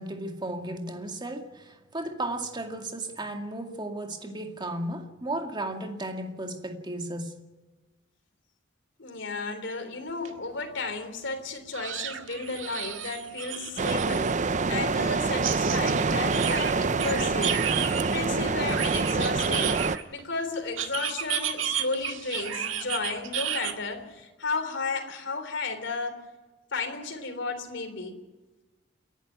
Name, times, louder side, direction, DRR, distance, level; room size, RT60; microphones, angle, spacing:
voice 1, 0.0-7.4, right 1 dB, 25° right, 2.2 m, -34 dB
voice 2, 9.0-17.6 17.9-19.8 20.1-26.2 26.7-28.2, left 3 dB, 65° left, 3.5 m, -33 dB
sound 1, 10.2-10.3 10.7-10.8 11.7-14.3 15.4-18.1 18.7-20.2 20.8-23.7, right 8 dB, 85° right, 1.9 m, -32 dB
sound 2, 13.8-20.0, right 4 dB, 40° right, 0.6 m, -26 dB
28.5 x 11.0 x 9.3 m
head